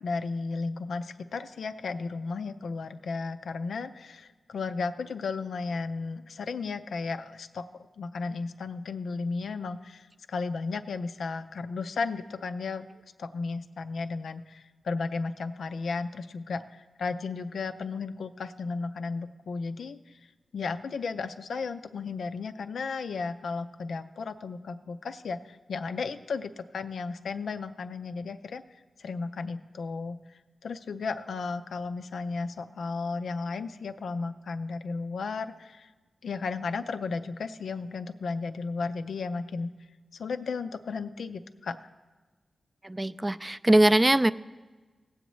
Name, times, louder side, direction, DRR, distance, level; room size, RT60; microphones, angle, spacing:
voice 1, 0.0-7.7 8.0-12.9 13.2-20.2 20.5-28.6 29.0-30.2 30.6-35.9 36.2-39.7 40.1-41.8, left 4 dB, 85° left, 8 dB, 0.4 m, -34 dB
voice 2, 42.8-44.3, right 1 dB, 20° right, 12 dB, 0.4 m, -21 dB
18.5 x 7.9 x 3.1 m, 1.3 s
cardioid pair, 60°, 0 cm